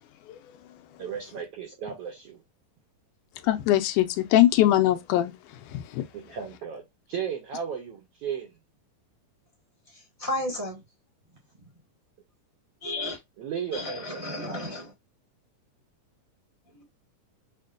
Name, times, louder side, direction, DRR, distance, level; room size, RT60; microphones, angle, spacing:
voice 1, 1.0-2.4 6.1-8.5 13.4-14.8, right 7 dB, 75° right, 1.4 m, -35 dB
voice 2, 3.5-5.3 5.7-6.0, left 13 dB, 85° left, 2.0 m, -21 dB
voice 3, 9.9-10.8 12.8-13.2 13.7-14.9, left 1 dB, 20° right, 0.8 m, -33 dB
6.3 x 2.2 x 2.4 m
omnidirectional pair, 3.7 m